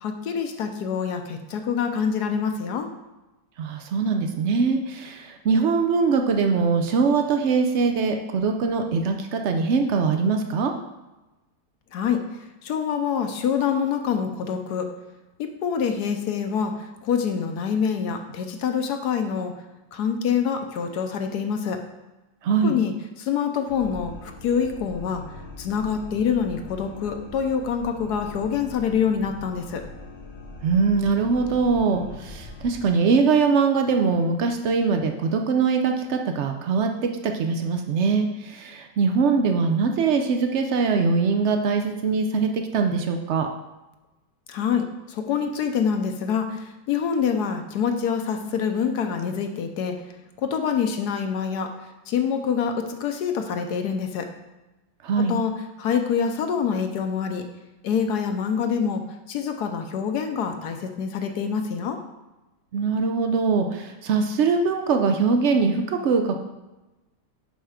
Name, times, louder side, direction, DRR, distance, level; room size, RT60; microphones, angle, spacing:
voice 1, 0.0-2.9 11.9-12.2 12.6-14.9 15.4-19.5 19.9-21.8 22.6-25.2 25.6-29.8 44.5-50.0 50.4-51.7 52.1-54.3 55.2-55.5 55.8-57.4 57.8-59.0 59.3-62.0, left 7 dB, 70° left, 5 dB, 1.2 m, -26 dB
voice 2, 3.6-10.7 22.4-22.7 30.6-43.5 55.0-55.4 62.7-66.4, right 5 dB, 85° right, 5 dB, 0.6 m, -22 dB
sound 1, 23.7-32.9, left 3 dB, 50° left, 0.9 m, -41 dB
5.9 x 5.5 x 4.9 m, 1.1 s
omnidirectional pair, 1.9 m